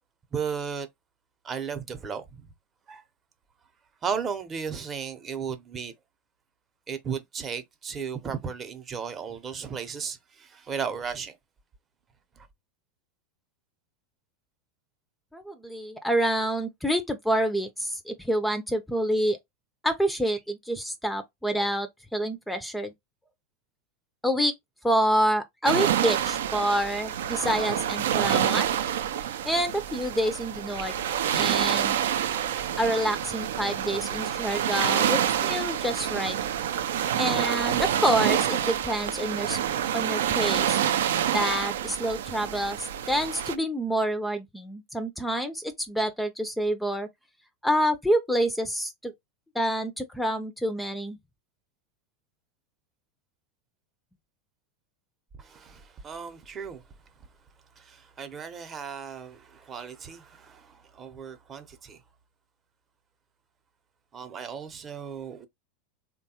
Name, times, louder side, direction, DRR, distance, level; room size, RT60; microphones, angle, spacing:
voice 1, 0.3-0.9 1.4-2.5 2.9-3.0 4.0-5.9 6.9-11.4 12.4-12.5 55.4-56.8 57.8-62.0 64.1-65.5, right 6 dB, 30° right, 0.7 m, -35 dB
voice 2, 15.3-19.4 19.8-22.9 24.2-24.5 24.8-28.8 29.4-30.9 31.3-32.0 32.8-36.4 37.2-39.6 39.9-40.8 41.3-47.1 47.6-49.1 49.5-51.2, equal, 5° left, 0.4 m, -27 dB
sound 1, 25.6-43.5, right 10 dB, 70° right, 0.4 m, -27 dB
3.2 x 2.2 x 2.8 m
hypercardioid pair, 90°, 0 cm